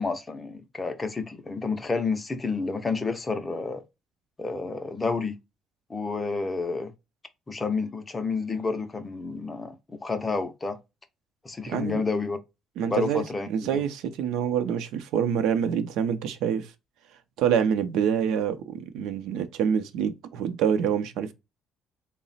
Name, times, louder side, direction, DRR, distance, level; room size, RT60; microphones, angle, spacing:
voice 1, 0.0-3.8 4.4-5.4 5.9-6.9 7.5-9.7 10.0-10.8 11.4-12.4 12.9-13.8, left 4 dB, 15° left, 0.4 m, -30 dB
voice 2, 11.7-12.0 12.8-16.7 17.4-21.3, right 8 dB, 85° right, 0.5 m, -26 dB
3.9 x 2.0 x 3.9 m
cardioid pair, 170°, 0 cm